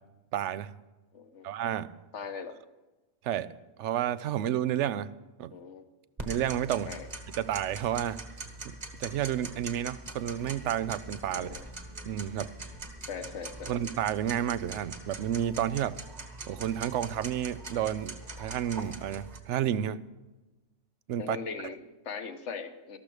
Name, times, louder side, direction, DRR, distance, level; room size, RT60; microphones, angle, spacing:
voice 1, 0.3-0.7 1.4-1.9 3.2-3.5 3.8-5.1 5.4-5.5 6.3-6.9 7.4-8.2 8.6-11.6 12.1-12.5 13.7-16.0 16.5-20.0 21.1-21.4, right 10 dB, 65° right, 17 dB, 0.8 m, -31 dB
voice 2, 1.1-1.5 2.1-2.5 5.5-5.8 6.8-7.1 11.3-11.7 13.1-13.7 21.2-23.0, left 6 dB, 60° left, 8 dB, 1.3 m, -40 dB
Tick-tock, 6.2-19.4, right 2 dB, 30° right, 1.5 m, -43 dB
13.5 x 13.0 x 4.9 m, 1.1 s
omnidirectional pair, 1.4 m